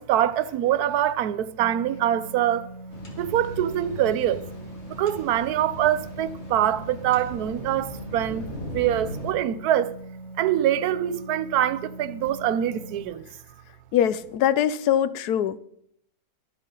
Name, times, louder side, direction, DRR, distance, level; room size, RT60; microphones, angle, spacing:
voice 1, 0.0-2.7 3.2-4.5 4.9-8.5 8.7-9.9 10.4-13.3, right 11 dB, 70° right, 1.2 m, -24 dB
sound 1, 1.6-13.0, right 2 dB, ahead, 2.3 m, -42 dB
sound 2, 2.9-9.3, left 1 dB, 40° left, 2.9 m, -39 dB
voice 2, 13.9-15.6, left 10 dB, 75° left, 1.2 m, -22 dB
24.0 x 8.3 x 3.8 m
omnidirectional pair, 1.8 m